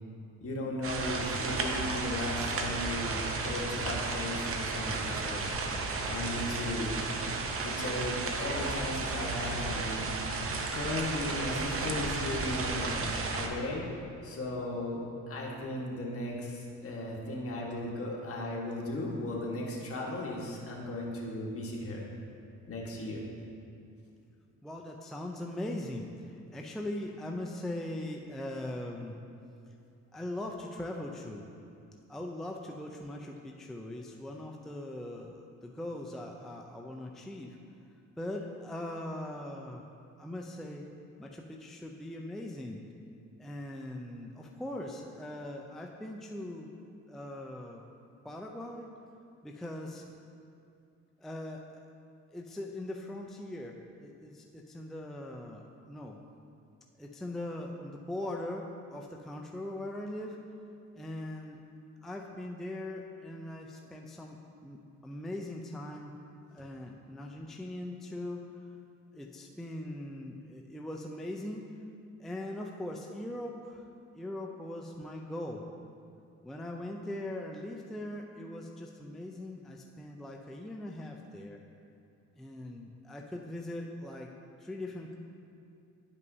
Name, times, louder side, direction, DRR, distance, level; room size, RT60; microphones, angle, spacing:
voice 1, 0.4-5.4 6.1-6.9 7.6-10.2 10.7-13.9 14.2-22.0 22.7-23.2, left 1 dB, 50° left, -3 dB, 1.4 m, -36 dB
sound 1, 0.8-13.5, right 3 dB, 45° right, 0.7 m, -33 dB
voice 2, 24.6-29.2 30.1-31.5 32.1-37.6 38.2-39.8 40.2-40.9 41.2-42.8 43.4-46.7 47.1-47.8 48.2-48.9 49.4-50.0 51.2-51.8 52.3-56.2 57.0-60.4 61.0-61.6 62.0-64.8 65.0-66.1 66.5-68.5 69.1-71.7 72.2-73.8 74.2-75.6 76.4-81.6 82.4-84.3 84.6-85.1, left 1 dB, ahead, 0 dB, 0.4 m, -40 dB
10.5 x 5.4 x 2.7 m, 2.6 s
cardioid pair, 90°, 30 cm